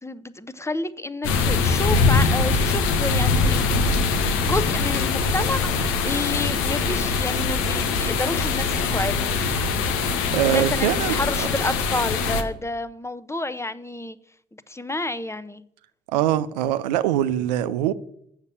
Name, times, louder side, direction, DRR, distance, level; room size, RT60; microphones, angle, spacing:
voice 1, 0.0-3.7 4.4-9.3 10.5-14.2 14.7-15.6, left 2 dB, 15° left, 0.8 m, -29 dB
sound 1, 1.2-12.4, left 4 dB, 75° left, 0.9 m, -22 dB
voice 2, 10.3-11.5 16.1-17.9, right 11 dB, 90° right, 0.4 m, -23 dB
7.3 x 6.7 x 7.0 m
hypercardioid pair, 40°, 21 cm